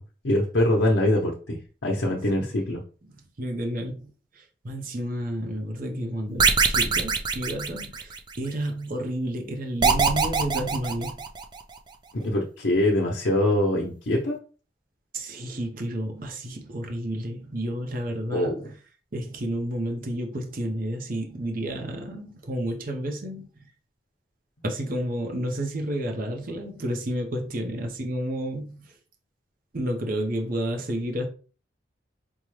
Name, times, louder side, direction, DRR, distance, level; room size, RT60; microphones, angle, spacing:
voice 1, 0.2-1.6 1.8-2.8 12.2-14.4 18.3-18.7, left 1 dB, 85° left, 0.8 m, -23 dB
voice 2, 3.0-11.1 15.1-18.7 19.1-23.4 24.6-28.9 29.7-31.2, right 1 dB, 55° right, 0.8 m, -31 dB
sound 1, 6.4-8.4 9.8-11.6, right 5 dB, 25° right, 0.4 m, -23 dB
5.4 x 2.2 x 3.1 m
head